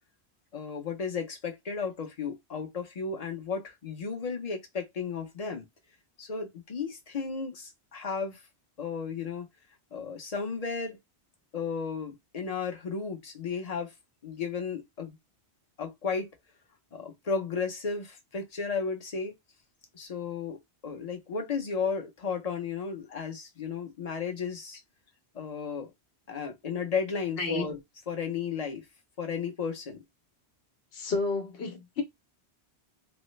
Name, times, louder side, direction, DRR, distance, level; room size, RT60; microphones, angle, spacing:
voice 1, 0.5-5.6 6.2-8.4 8.8-9.5 9.9-11.0 11.5-13.9 14.2-15.2 15.8-16.3 16.9-19.3 19.9-24.8 25.3-25.9 26.3-27.8 28.1-28.9 29.2-30.0, left 5 dB, 40° left, 0.8 m, -34 dB
voice 2, 30.9-32.0, left 3 dB, 70° left, 1.1 m, -30 dB
3.3 x 2.1 x 3.1 m
omnidirectional pair, 1.1 m